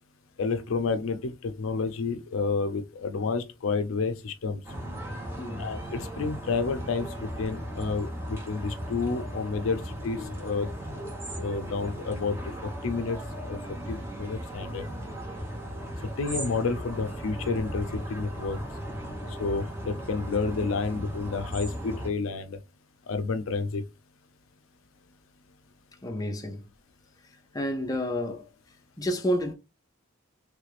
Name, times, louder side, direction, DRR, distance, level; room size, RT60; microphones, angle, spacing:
voice 1, 0.4-4.6 5.6-10.7 11.4-13.2 13.4-13.6 13.9-14.9 16.2-18.6 19.4-22.6 23.1-23.8, left 4 dB, 85° left, 0.5 m, -30 dB
sound 1, 4.6-22.1, equal, 15° right, 0.9 m, -37 dB
voice 2, 5.4-5.7 26.0-26.6 27.5-28.5 29.0-29.5, equal, 20° left, 0.5 m, -29 dB
3.3 x 2.4 x 3.2 m
head